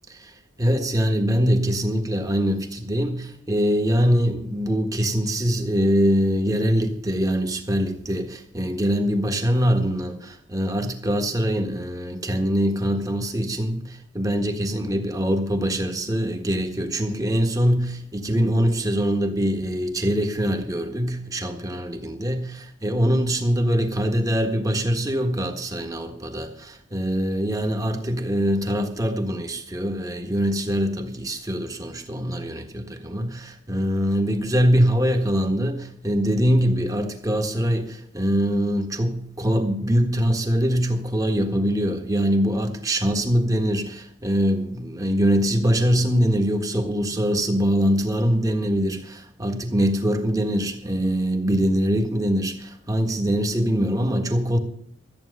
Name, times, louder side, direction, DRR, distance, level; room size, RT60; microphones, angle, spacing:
voice 1, 0.6-22.4 22.8-54.6, equal, 20° right, 1.5 m, -23 dB
14.0 x 8.9 x 6.6 m
head